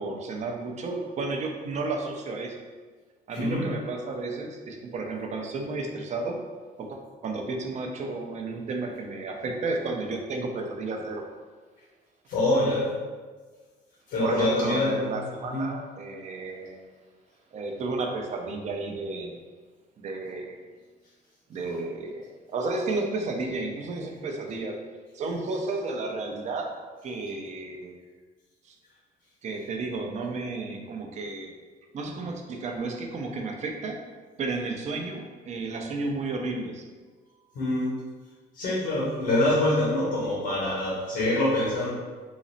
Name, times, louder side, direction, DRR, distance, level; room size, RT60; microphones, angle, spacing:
voice 1, 0.0-2.6 3.3-6.4 6.8-11.3 14.2-16.8 17.5-19.4 20.0-20.6 21.5-24.8 25.1-26.7 27.0-28.0 28.6-28.7 29.4-31.5 31.9-34.0 34.4-36.8, right 3 dB, 45° right, 3 dB, 0.6 m, -32 dB
voice 2, 3.3-3.6 12.3-12.9 14.1-15.1 15.5-15.6 37.5-37.9 38.5-41.9, left 1 dB, 80° left, -7 dB, 1.3 m, -25 dB
3.9 x 2.0 x 3.9 m, 1.4 s
cardioid pair, 110°, 17 cm